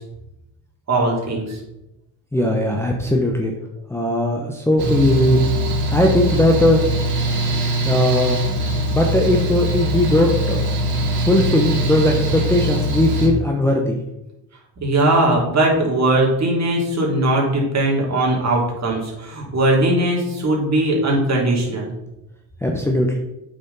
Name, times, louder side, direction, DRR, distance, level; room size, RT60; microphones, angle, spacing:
voice 1, 0.9-1.6 14.8-21.9, right 1 dB, 40° right, -2 dB, 3.1 m, -19 dB
voice 2, 2.3-3.5 3.9-5.4 5.9-6.8 7.8-8.4 8.9-10.6 11.0-14.0 22.6-23.2, left 1 dB, 5° left, 0 dB, 1.0 m, -18 dB
Mechanical fan, 4.8-13.3, equal, 60° right, 3.1 m, -22 dB
8.3 x 6.4 x 4.1 m, 0.92 s
cardioid pair, 100°, 43 cm